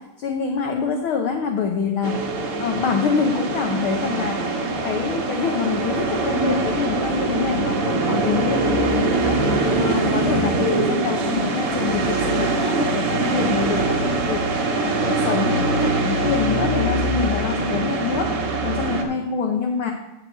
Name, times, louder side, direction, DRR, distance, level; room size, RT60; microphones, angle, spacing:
voice 1, 0.0-2.2 2.6-4.5 4.8-9.4 9.8-18.3 18.6-19.9, left 6 dB, 65° left, 2 dB, 1.3 m, -25 dB
sound 1, 2.0-19.0, right 3 dB, 60° right, 1.9 m, -23 dB
9.8 x 4.8 x 7.9 m, 1.0 s
omnidirectional pair, 3.4 m